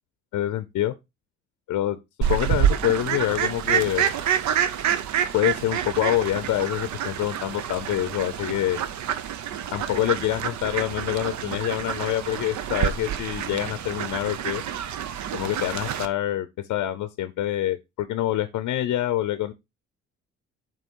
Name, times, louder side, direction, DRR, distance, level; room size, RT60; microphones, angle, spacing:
voice 1, 0.3-0.9 1.7-2.0 2.3-4.1 5.3-8.8 9.7-14.6 15.3-19.5, left 13 dB, 80° left, 0.6 m, -26 dB
Fowl, 2.2-16.1, right 9 dB, 70° right, 0.7 m, -27 dB
7.0 x 2.9 x 4.5 m
cardioid pair, 90°, 30 cm